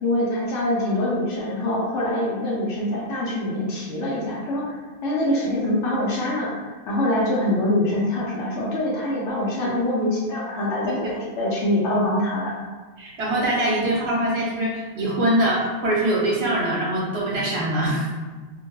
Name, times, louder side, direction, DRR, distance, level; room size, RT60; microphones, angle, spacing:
voice 1, 0.0-6.5 6.9-12.6, left 1 dB, 90° left, -6 dB, 1.1 m, -24 dB
voice 2, 13.0-18.1, right 1 dB, 65° right, -4 dB, 1.0 m, -23 dB
2.7 x 2.2 x 3.0 m, 1.4 s
omnidirectional pair, 1.2 m